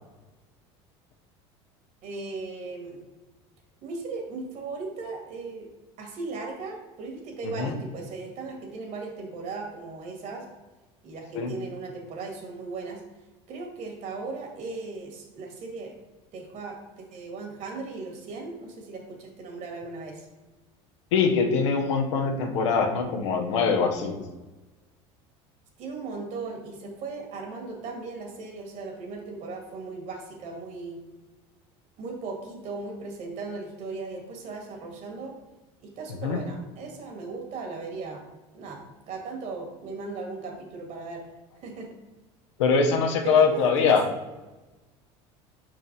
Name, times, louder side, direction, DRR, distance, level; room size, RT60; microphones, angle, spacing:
voice 1, 2.0-3.0 3.8-5.7 6.0-10.5 11.0-13.0 13.5-15.9 16.3-20.3 25.8-31.0 32.0-35.4 35.8-38.2 38.5-41.3 41.6-41.9 43.2-44.0, right 3 dB, 55° right, 2 dB, 1.9 m, -37 dB
voice 2, 7.4-7.7 11.3-11.5 21.1-24.2 36.2-36.4 42.6-44.0, left 5 dB, 90° left, 4 dB, 1.0 m, -23 dB
5.6 x 4.7 x 4.0 m, 1.1 s
supercardioid pair, 100°, 15 cm